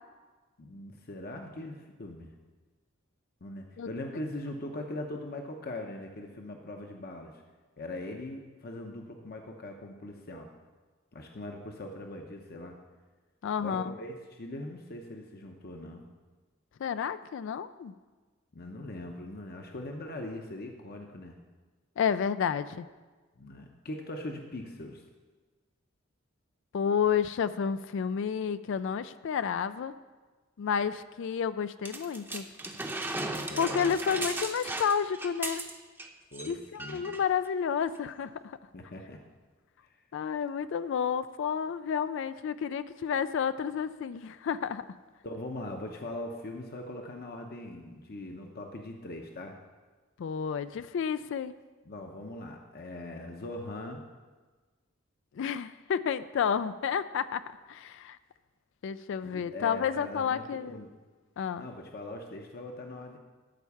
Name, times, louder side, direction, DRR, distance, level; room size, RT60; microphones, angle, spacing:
voice 1, 0.6-2.3 3.4-7.4 7.8-10.5 11.1-12.8 13.6-16.0 18.5-21.4 23.4-25.0 33.2-34.0 36.3-37.0 38.7-39.2 39.8-40.0 45.2-49.6 51.9-54.0 59.2-60.9 61.6-63.2, left 1 dB, 50° left, 3 dB, 0.8 m, -41 dB
voice 2, 13.4-14.0 16.8-17.9 22.0-22.9 26.7-29.9 30.6-32.5 33.6-35.6 36.5-38.6 40.1-44.9 50.2-51.5 55.3-58.2 58.8-60.8 61.4-61.6, left 7 dB, 65° left, 13 dB, 0.3 m, -30 dB
sound 1, 31.8-36.1 36.3-36.5 36.8-37.2 37.9-38.0, right 2 dB, 10° right, 0.7 m, -36 dB
13.5 x 4.5 x 7.0 m, 1.3 s
head